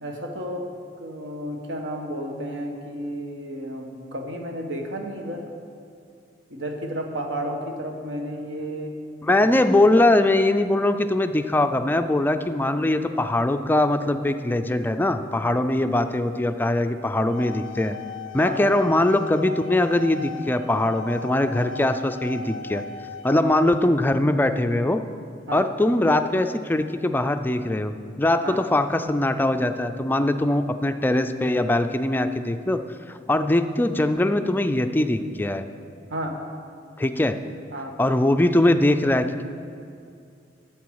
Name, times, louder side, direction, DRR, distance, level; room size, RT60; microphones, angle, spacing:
voice 1, 0.0-0.7 1.0-5.4 6.5-9.0 9.4-9.6 18.4-18.6 23.3-23.5 25.5-25.7 28.4-28.6 36.1-36.4 37.7-38.0, equal, 75° right, 3 dB, 1.2 m, -32 dB
voice 2, 9.2-18.0 18.3-22.8 23.2-25.0 25.5-32.8 33.1-35.6 37.0-37.4 38.0-39.4, left 1 dB, 10° left, 8 dB, 0.4 m, -21 dB
sound 1, 17.1-23.4, left 4 dB, 85° left, 0.4 m, -37 dB
11.0 x 7.6 x 4.7 m, 2.4 s
head